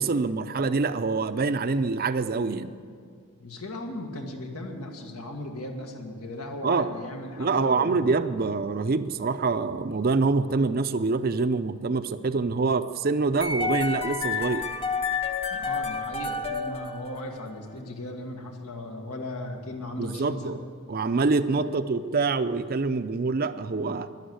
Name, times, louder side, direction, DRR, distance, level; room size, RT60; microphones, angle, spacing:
voice 1, 0.0-2.7 6.6-6.9 7.4-14.6 20.0-20.5 20.9-24.1, right 4 dB, 45° right, 11 dB, 0.5 m, -25 dB
voice 2, 3.4-8.1 15.5-20.6 21.6-21.7, left 1 dB, 90° left, 2 dB, 1.8 m, -37 dB
sound 1, 13.4-17.5, left 4 dB, 25° left, 0.8 m, -30 dB
11.5 x 11.0 x 8.1 m, 2.2 s
head